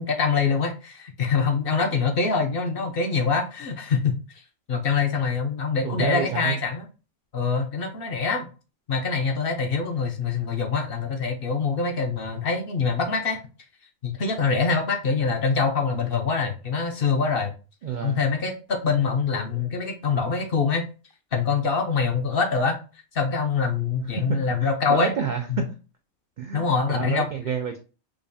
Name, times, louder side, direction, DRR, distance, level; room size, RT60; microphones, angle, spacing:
voice 1, 0.0-4.2 4.7-6.9 7.3-8.5 8.9-13.4 14.0-17.5 18.0-20.8 21.3-22.8 23.1-25.2 25.5-25.6 26.5-27.3, left 5 dB, 55° left, 4 dB, 0.7 m, -24 dB
voice 2, 5.8-6.6 17.8-18.2 24.2-25.7 26.4-27.8, right 6 dB, 80° right, 4 dB, 0.4 m, -29 dB
5.1 x 2.3 x 2.5 m, 0.33 s
omnidirectional pair, 1.4 m